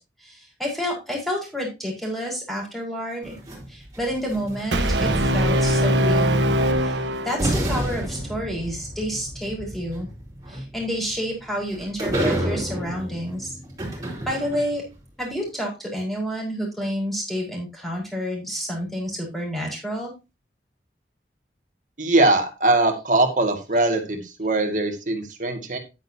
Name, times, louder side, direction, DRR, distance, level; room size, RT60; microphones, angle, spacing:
voice 1, 0.2-3.4 3.7-6.5 6.8-10.1 10.5-13.6 14.3-14.8 15.2-20.1, equal, ahead, -2 dB, 4.9 m, -29 dB
sound 1, 3.2-5.6 6.8-6.9 7.4-14.9, right 1 dB, 20° right, 4.4 m, -30 dB
Brass instrument, 4.7-7.8, right 1 dB, 85° right, 1.3 m, -21 dB
voice 2, 22.0-25.8, right 2 dB, 45° right, 5 dB, 2.1 m, -21 dB
10.5 x 9.3 x 2.8 m, 0.26 s
head